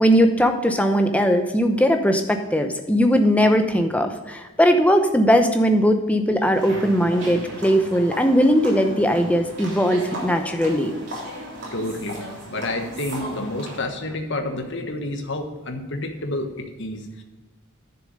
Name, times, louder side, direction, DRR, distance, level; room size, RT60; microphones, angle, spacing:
voice 1, 0.0-10.9, equal, 5° left, 6 dB, 0.8 m, -19 dB
sound 1, 6.5-13.8, equal, 55° right, 3.4 m, -35 dB
voice 2, 11.7-17.2, left 1 dB, 55° left, 4 dB, 1.3 m, -29 dB
9.9 x 7.0 x 5.2 m, 1.2 s
head